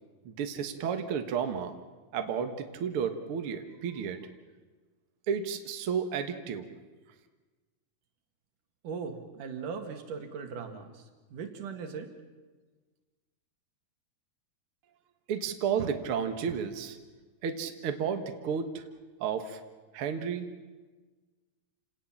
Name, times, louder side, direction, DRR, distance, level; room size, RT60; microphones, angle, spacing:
voice 1, 0.3-1.8 2.1-4.2 5.3-6.7 15.3-17.0 17.4-18.8 19.2-19.6 19.9-20.5, right 7 dB, 55° right, 6 dB, 1.9 m, -32 dB
voice 2, 8.8-12.1, right 5 dB, 75° right, 5 dB, 3.5 m, -39 dB
28.0 x 18.5 x 7.3 m, 1.3 s
omnidirectional pair, 3.8 m